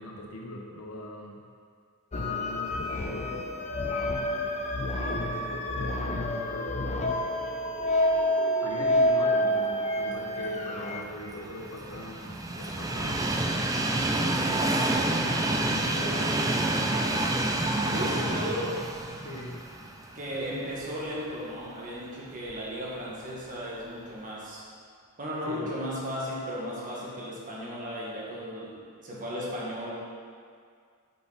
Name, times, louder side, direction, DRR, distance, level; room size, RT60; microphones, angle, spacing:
voice 1, 0.0-1.4 2.1-3.5 5.0-7.1 8.6-13.5 14.2-17.3 17.8-18.1 18.5-18.8 19.2-19.6 25.4-25.7, left 1 dB, 80° left, -1 dB, 1.1 m, -40 dB
sound 1, 2.1-11.0, left 1 dB, 30° left, 0.6 m, -28 dB
Train, 10.7-20.9 21.3-21.4 22.5-22.6, right 2 dB, 15° right, 0.4 m, -28 dB
voice 2, 17.9-18.8 20.1-24.7 25.2-29.9, equal, 35° right, -5 dB, 1.6 m, -35 dB
8.0 x 5.4 x 4.1 m, 2.2 s
head